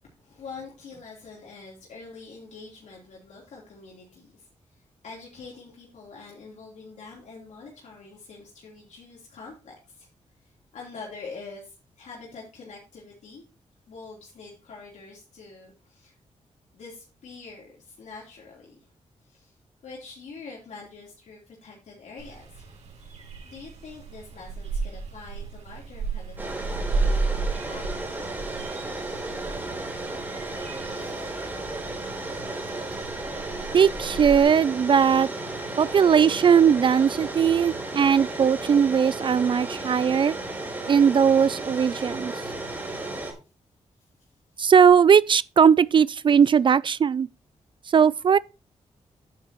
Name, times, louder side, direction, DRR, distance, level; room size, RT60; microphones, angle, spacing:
voice 1, 0.0-13.4 13.9-16.2 16.7-18.9 19.2-19.6 19.8-27.8 28.1-28.3 29.3-30.2 30.4-31.5 32.6-33.1 44.0-44.7, left 4 dB, 85° left, 3.6 m, -45 dB
sound 1, 22.2-34.4, right 3 dB, 70° right, 5.3 m, -33 dB
sound 2, 26.4-43.3, right 2 dB, 15° right, 4.0 m, -34 dB
voice 2, 33.7-35.3 35.8-40.3 40.9-42.3 44.6-47.3 47.9-48.4, right 7 dB, 45° right, 0.4 m, -19 dB
10.0 x 8.9 x 3.0 m
wide cardioid pair, 155°, 12 cm